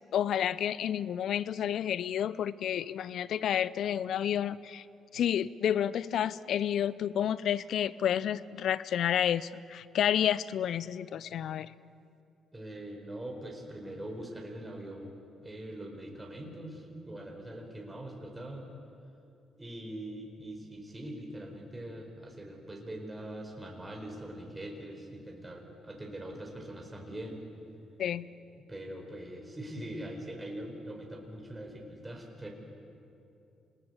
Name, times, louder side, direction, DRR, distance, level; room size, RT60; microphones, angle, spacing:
voice 1, 0.1-4.8 5.1-11.7 28.0-28.3, left 10 dB, 70° left, 18 dB, 0.6 m, -30 dB
voice 2, 12.5-18.7 19.6-27.4 28.7-32.5, right 1 dB, 20° right, 1 dB, 4.7 m, -42 dB
26.5 x 20.0 x 8.1 m, 2.7 s
supercardioid pair, 65°, 0 cm